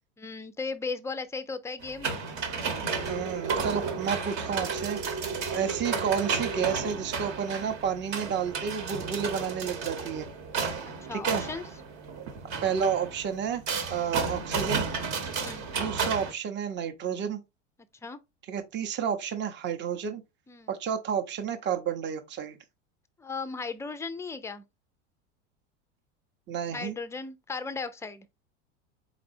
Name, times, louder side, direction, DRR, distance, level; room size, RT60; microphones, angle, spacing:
voice 1, 0.2-2.2 10.8-11.6 13.9-14.1 15.3-15.6 18.0-18.2 20.5-20.7 23.2-24.6 26.7-28.3, left 4 dB, 10° left, 0.4 m, -36 dB
sound 1, 1.8-16.3, right 5 dB, 45° right, 1.1 m, -32 dB
voice 2, 3.1-5.0 5.5-10.3 11.1-11.5 12.6-13.6 13.9-14.9 15.8-17.4 18.5-20.2 20.7-22.6 26.5-27.0, right 7 dB, 30° right, 0.7 m, -31 dB
4.2 x 4.1 x 2.6 m
hypercardioid pair, 95°, 36 cm